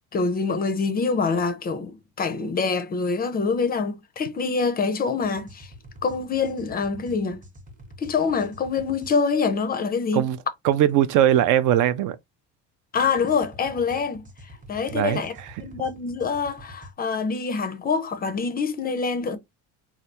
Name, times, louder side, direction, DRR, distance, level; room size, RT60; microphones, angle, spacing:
voice 1, 0.1-5.7 6.0-7.4 8.0-10.2 12.9-14.2 14.7-15.3 15.6-19.4, left 5 dB, 25° left, 0.4 m, -25 dB
sound 1, 5.2-9.1 13.0-16.9, equal, 25° right, 0.7 m, -47 dB
voice 2, 10.6-12.2 14.9-15.6, right 11 dB, 60° right, 0.4 m, -21 dB
3.2 x 2.3 x 2.8 m
cardioid pair, 125°, 35 cm